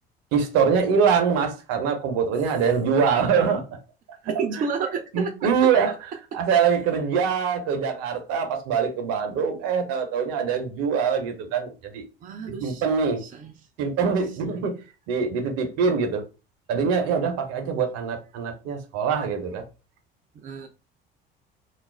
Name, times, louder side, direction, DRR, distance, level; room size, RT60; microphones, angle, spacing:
voice 1, 0.3-3.7 4.6-4.7 5.1-5.9 6.3-12.0 12.6-13.2 13.8-14.8 15.1-16.2 16.7-19.6, right 6 dB, 55° right, 0.7 m, -23 dB
voice 2, 4.2-5.7 6.3-6.7 12.2-12.8 13.2-13.5 20.3-20.7, right 6 dB, 30° right, 0.4 m, -32 dB
2.4 x 2.0 x 3.1 m
figure-of-eight pair, 60°, 30 cm